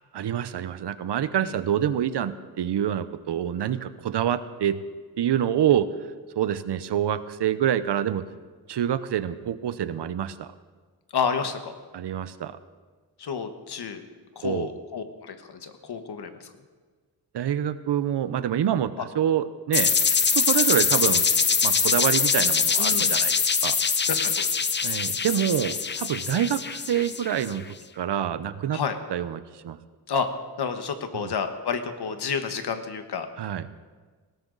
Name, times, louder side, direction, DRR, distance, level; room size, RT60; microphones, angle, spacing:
voice 1, 0.1-4.8 5.2-5.9 6.4-8.2 8.7-10.5 11.9-12.6 14.4-14.7 17.3-21.2 21.6-23.8 24.8-27.6 28.0-28.8 29.1-29.8 31.1-31.3 33.4-33.7, right 10 dB, 90° right, 13 dB, 0.8 m, -26 dB
voice 2, 11.1-11.7 13.2-14.0 14.4-16.5 22.8-23.1 24.1-24.6 28.7-29.0 30.1-30.3 30.6-33.3, left 6 dB, 70° left, 8 dB, 1.4 m, -30 dB
sound 1, 19.7-27.5, left 5 dB, 30° left, 0.5 m, -23 dB
20.0 x 17.5 x 4.0 m, 1.4 s
wide cardioid pair, 170°, 40 cm